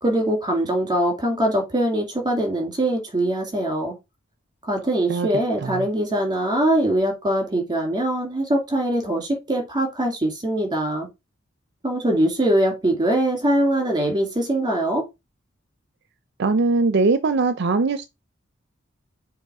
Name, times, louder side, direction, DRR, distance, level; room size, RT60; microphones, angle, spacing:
voice 1, 0.0-4.0 4.6-11.1 11.8-15.0, right 1 dB, 20° right, 2.2 m, -22 dB
voice 2, 16.4-18.1, right 3 dB, 60° right, 0.5 m, -21 dB
6.6 x 2.9 x 4.8 m
head